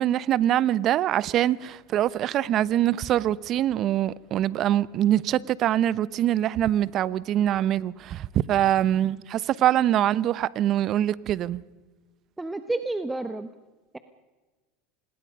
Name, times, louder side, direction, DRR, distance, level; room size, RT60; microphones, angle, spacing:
voice 1, 0.0-11.6, right 12 dB, 50° right, 0.8 m, -24 dB
voice 2, 12.4-13.5, right 2 dB, 10° right, 1.2 m, -30 dB
26.0 x 20.5 x 5.5 m
hypercardioid pair, 95°, 0 cm